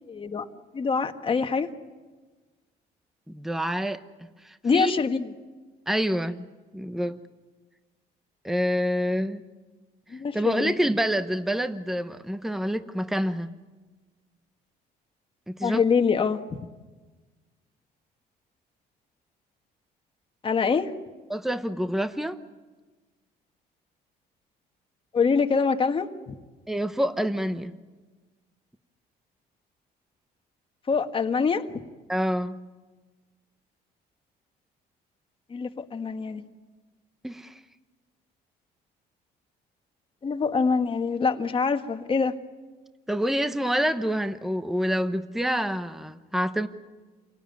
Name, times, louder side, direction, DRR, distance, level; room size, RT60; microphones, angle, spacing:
voice 1, 0.1-0.5 0.7-1.7 4.6-5.3 10.1-10.7 15.6-16.4 20.4-20.9 25.1-26.3 30.9-31.6 35.5-36.4 40.2-42.3, left 5 dB, 30° left, 6 dB, 1.6 m, -24 dB
voice 2, 3.3-4.0 4.4-4.9 5.9-6.4 6.7-7.2 8.4-9.4 10.3-13.5 15.5-15.8 21.3-22.4 26.7-27.7 32.1-32.6 37.2-37.6 43.1-46.7, equal, ahead, 10 dB, 1.0 m, -27 dB
28.0 x 18.5 x 9.4 m, 1.3 s
cardioid pair, 110°, 17 cm